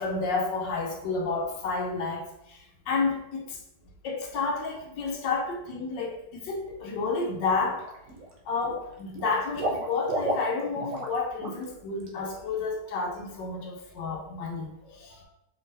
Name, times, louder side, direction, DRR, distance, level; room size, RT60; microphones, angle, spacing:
voice 1, 0.0-3.6 4.0-7.9 8.5-15.2, left 4 dB, 80° left, 0 dB, 1.4 m, -30 dB
Water / Liquid, 7.0-7.3 7.6-8.3 8.6-11.2 11.4-11.6 12.0-12.1, right 1 dB, 60° right, 1.1 m, -33 dB
5.0 x 3.7 x 2.6 m, 0.85 s
omnidirectional pair, 1.9 m